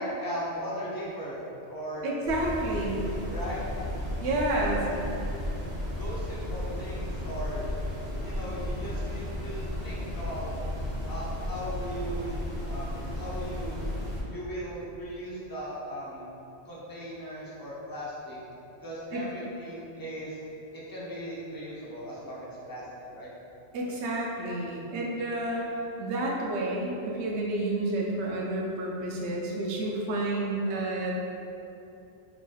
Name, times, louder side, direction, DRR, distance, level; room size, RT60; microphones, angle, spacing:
voice 1, 0.0-2.0 3.0-3.6 4.6-5.0 6.0-7.7 8.2-10.5 11.1-13.8 14.3-16.3 16.6-18.4 18.8-20.4 20.7-22.9 23.1-23.3, equal, 25° left, -7 dB, 0.5 m, -38 dB
voice 2, 2.0-3.1 4.2-4.9 19.1-19.3 23.7-25.7 26.0-31.1, right 1 dB, 75° right, -2 dB, 0.9 m, -30 dB
sound 1, 2.2-14.2, left 1 dB, 35° right, 1.0 m, -34 dB
3.9 x 3.1 x 2.2 m, 2.8 s
omnidirectional pair, 1.2 m